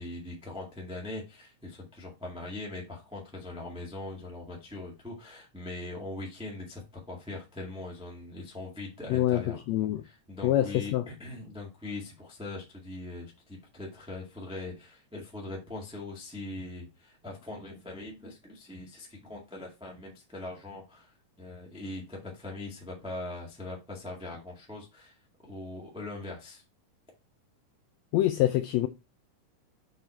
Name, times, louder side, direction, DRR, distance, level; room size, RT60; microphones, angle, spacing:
voice 1, 0.0-9.6 10.0-25.2 25.4-26.6, left 2 dB, 5° right, 0.7 m, -41 dB
voice 2, 9.1-10.0 10.4-11.0 28.1-28.9, left 14 dB, 85° left, 1.5 m, -26 dB
6.0 x 4.6 x 4.4 m
omnidirectional pair, 3.6 m